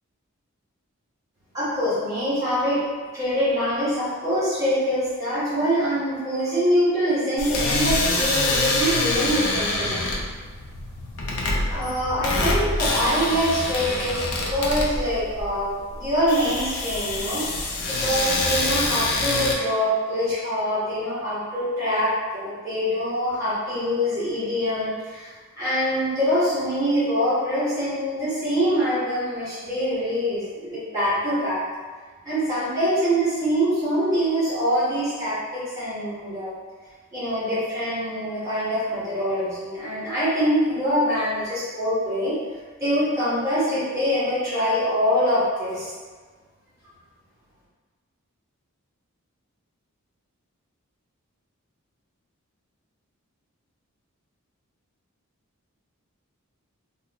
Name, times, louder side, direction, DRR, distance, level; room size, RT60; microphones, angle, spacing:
voice 1, 1.5-2.8 3.1-10.1 11.6-17.5 17.9-31.6 32.2-36.5 37.1-42.4 42.8-45.9, equal, 15° right, -11 dB, 1.5 m, -24 dB
sound 1, 7.4-19.5, left 2 dB, 80° left, 0.5 m, -26 dB
2.8 x 2.4 x 3.6 m, 1.5 s
head